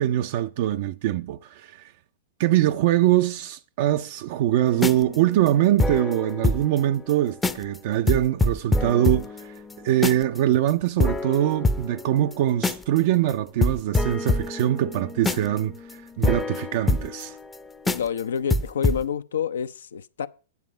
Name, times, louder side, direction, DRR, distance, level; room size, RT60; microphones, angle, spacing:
voice 1, 0.0-1.9 2.4-17.4, right 13 dB, 55° right, 0.4 m, -23 dB
sound 1, 4.7-6.8 7.1-7.2 7.4-7.8 8.1-10.4 10.7-10.8 11.0-13.0 13.3-13.4 13.6-17.6 17.9-18.2 18.5-19.0, left 2 dB, 10° left, 0.6 m, -26 dB
voice 2, 17.9-20.3, left 7 dB, 75° left, 0.6 m, -28 dB
9.5 x 7.4 x 5.1 m
hypercardioid pair, 105°, 0 cm